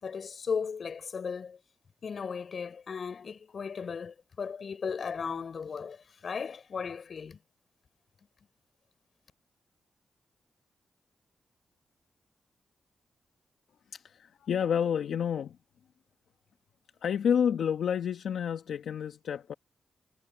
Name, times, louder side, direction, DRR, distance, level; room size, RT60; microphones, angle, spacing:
voice 1, 0.0-1.6 2.0-7.4, left 6 dB, 65° left, 4.7 m, -36 dB
voice 2, 13.9-15.6 17.0-19.5, left 8 dB, 80° left, 1.3 m, -29 dB
supercardioid pair, 50°, 0 cm